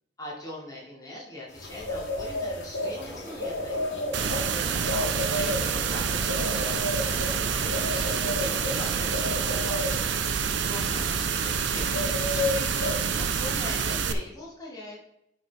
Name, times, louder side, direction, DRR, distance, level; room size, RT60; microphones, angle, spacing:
voice 1, 0.2-3.8 4.1-6.8 7.7-10.1 10.6-12.8 13.1-15.0, left 1 dB, 20° left, -5 dB, 2.3 m, -41 dB
sound 1, 1.6-13.7, left 2 dB, 90° left, 2.0 m, -33 dB
sound 2, 2.8-9.7, equal, 20° right, 1.7 m, -41 dB
sound 3, 4.1-14.1, right 6 dB, 80° right, 0.6 m, -27 dB
9.7 x 4.3 x 4.6 m, 0.82 s
head